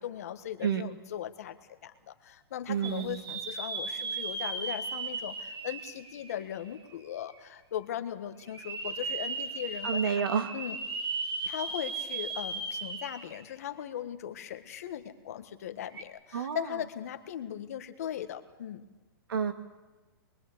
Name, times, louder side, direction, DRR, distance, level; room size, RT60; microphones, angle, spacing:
voice 1, 0.0-1.6 1.8-10.1 10.5-10.8 11.4-18.9, left 10 dB, 40° left, 9 dB, 1.5 m, -38 dB
voice 2, 2.7-3.2 9.8-10.5 16.3-16.7 19.3-19.5, right 7 dB, 65° right, 6 dB, 2.8 m, -29 dB
sound 1, 2.8-6.8 7.3-7.4 8.5-13.4 13.8-13.9 15.9-16.0, right 3 dB, 85° right, 4.8 m, -36 dB
26.5 x 22.5 x 8.5 m, 1.2 s
hypercardioid pair, 180°, 12 cm